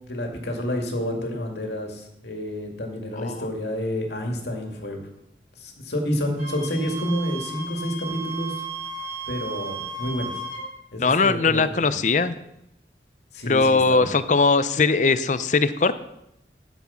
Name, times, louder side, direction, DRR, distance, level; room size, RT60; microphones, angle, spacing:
voice 1, 0.0-5.0 5.6-8.6 9.3-10.3 10.9-11.9 13.3-14.1, equal, 75° left, 2 dB, 2.3 m, -29 dB
Wind instrument woodwind instrument, 6.4-10.7, right 3 dB, 45° right, 4.3 m, -34 dB
voice 2, 11.0-12.3 13.5-16.0, left 4 dB, 45° left, 13 dB, 0.6 m, -20 dB
13.0 x 7.2 x 5.7 m, 0.82 s
head